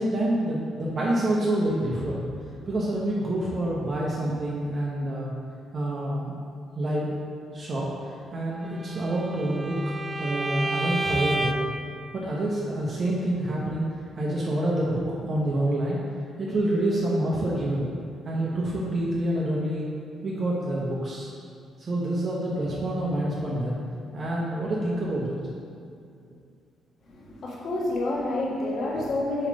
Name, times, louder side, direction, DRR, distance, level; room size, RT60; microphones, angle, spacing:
voice 1, 0.0-2.2 2.7-5.3 5.7-6.4 6.7-7.1 7.5-9.9 10.2-11.5 12.1-13.9 14.2-16.0 16.4-17.9 18.2-19.8 20.2-21.3 21.8-23.8 24.1-25.4, right 1 dB, 45° right, -5 dB, 1.0 m, -27 dB
Bowed string instrument, 8.8-11.8, right 1 dB, 20° right, 0.4 m, -30 dB
voice 2, 27.0-29.5, left 2 dB, 60° left, -4 dB, 1.5 m, -28 dB
7.2 x 3.3 x 5.2 m, 2.4 s
cardioid pair, 90°, 0 cm